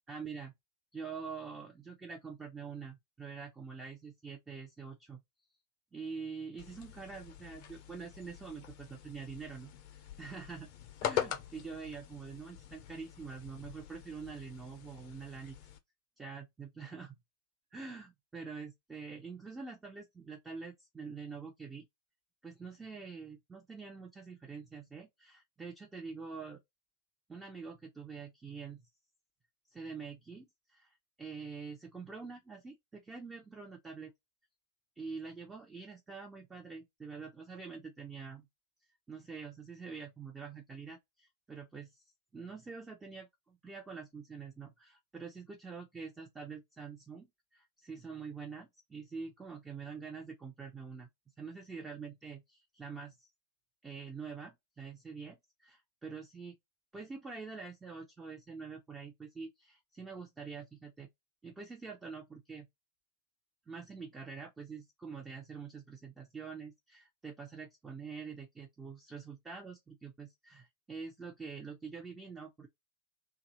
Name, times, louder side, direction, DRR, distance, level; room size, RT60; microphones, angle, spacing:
voice 1, 0.1-0.5 0.9-5.2 5.9-10.7 11.0-15.6 16.2-17.1 17.7-21.9 22.4-26.6 27.3-28.8 29.7-34.1 35.0-38.5 39.1-42.1 42.3-51.1 51.4-53.3 53.8-56.6 56.9-61.1 61.4-62.7 63.7-72.7, right 5 dB, 15° right, 0.7 m, -46 dB
sound 1, 6.6-15.8, left 10 dB, 45° left, 0.6 m, -43 dB
2.7 x 2.4 x 2.9 m
figure-of-eight pair, 90°, 0 cm